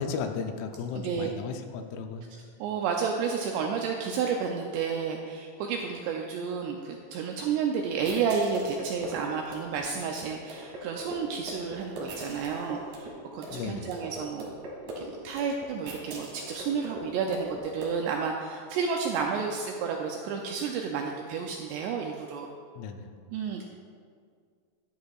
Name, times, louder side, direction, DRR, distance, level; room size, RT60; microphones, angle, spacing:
voice 1, 0.0-2.3 13.5-13.9 22.8-23.1, left 5 dB, 85° left, 6 dB, 3.0 m, -34 dB
voice 2, 0.9-1.3 2.3-14.5 15.0-22.5 23.3-23.6, right 6 dB, 85° right, 1 dB, 2.5 m, -31 dB
sound 1, 8.0-17.9, right 1 dB, 60° right, 2.0 m, -41 dB
11.0 x 10.5 x 2.4 m, 2.1 s
omnidirectional pair, 5.5 m